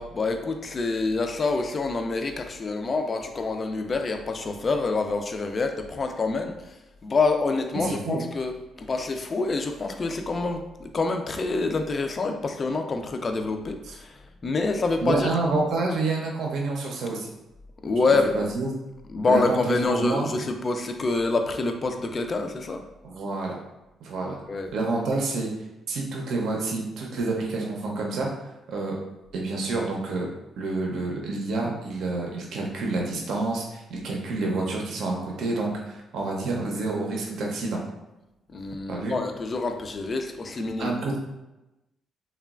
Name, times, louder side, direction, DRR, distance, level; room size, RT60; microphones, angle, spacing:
voice 1, 0.0-15.3 17.8-18.3 19.1-22.8 24.5-24.7 38.5-41.2, left 3 dB, 40° left, 6 dB, 0.3 m, -27 dB
voice 2, 7.7-8.2 13.9-14.0 15.0-17.3 18.3-18.7 19.2-20.3 23.0-23.6 24.0-24.4 24.7-25.5 25.9-28.3 28.7-29.0 29.3-37.8 38.9-39.2 40.8-41.2, right 3 dB, 75° right, -1 dB, 0.5 m, -28 dB
3.0 x 2.2 x 2.3 m, 0.97 s
cardioid pair, 90°, 0 cm